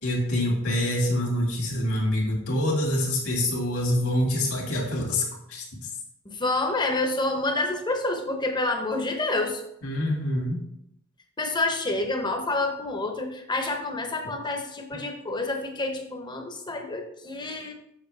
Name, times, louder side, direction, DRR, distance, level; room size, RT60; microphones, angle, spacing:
voice 1, 0.0-5.9 9.8-10.6, left 1 dB, 70° left, -1 dB, 2.1 m, -26 dB
voice 2, 6.2-9.6 11.4-17.7, left 2 dB, 20° left, 4 dB, 0.9 m, -28 dB
7.3 x 6.0 x 3.4 m, 0.76 s
head